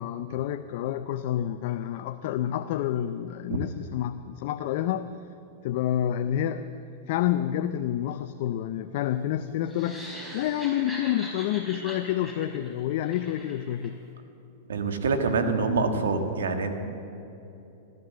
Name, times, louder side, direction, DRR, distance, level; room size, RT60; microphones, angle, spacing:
voice 1, 0.0-5.1 5.6-6.7 7.1-14.0, left 11 dB, 60° left, 9 dB, 0.5 m, -29 dB
sound 1, 9.7-13.9, equal, 10° right, 4.4 m, -41 dB
voice 2, 14.7-16.8, right 4 dB, 85° right, 6 dB, 1.6 m, -26 dB
14.5 x 12.0 x 7.5 m, 2.9 s
hypercardioid pair, 120°, 0 cm